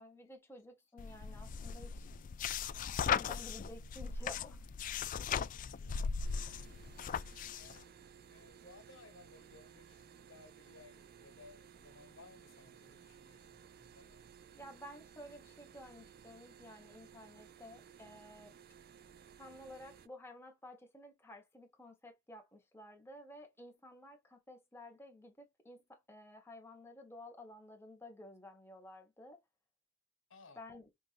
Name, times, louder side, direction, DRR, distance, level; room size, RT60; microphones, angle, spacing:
voice 1, 0.0-2.1 3.0-4.6 14.5-18.5 19.4-29.4 30.6-30.9, left 1 dB, 15° left, 1.1 m, -53 dB
sound 1, 1.0-7.8, left 7 dB, 45° left, 0.3 m, -38 dB
voice 2, 5.0-6.9 7.3-14.2 30.3-30.6, left 3 dB, 90° left, 1.2 m, -61 dB
sound 2, 6.2-20.1, right 7 dB, 50° right, 0.4 m, -58 dB
5.4 x 2.6 x 2.5 m
head